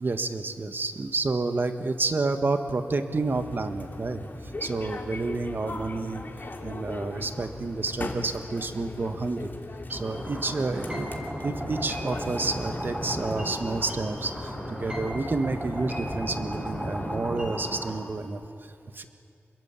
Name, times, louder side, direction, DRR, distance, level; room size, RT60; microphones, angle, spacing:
voice 1, 0.0-6.2 6.6-9.5 9.9-11.1 11.4-19.0, right 3 dB, 50° right, 8 dB, 1.6 m, -30 dB
sound 1, 3.2-17.2, left 2 dB, 45° left, 2.9 m, -39 dB
sound 2, 9.9-17.9, equal, 20° right, 7.1 m, -35 dB
26.5 x 22.0 x 8.4 m, 2.5 s
wide cardioid pair, 80°, 5 cm